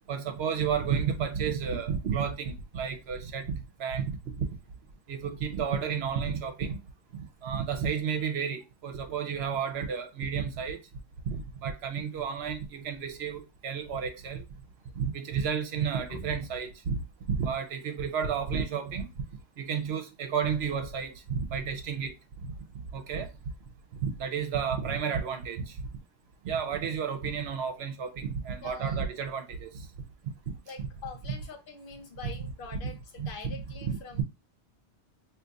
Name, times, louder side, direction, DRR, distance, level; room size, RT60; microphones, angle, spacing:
voice 1, 0.1-4.5 5.1-6.8 7.1-10.8 11.3-14.4 15.0-17.0 17.3-19.2 19.6-22.1 22.4-22.5 22.9-23.3 23.9-25.9 26.4-29.8 30.2-30.5 32.2-32.3 33.2-33.3 33.9-34.2, right 7 dB, 65° right, 0.9 m, -32 dB
voice 2, 16.1-16.5 28.6-29.0 30.7-34.2, left 4 dB, 55° left, 0.9 m, -44 dB
2.7 x 2.5 x 3.8 m
omnidirectional pair, 1.2 m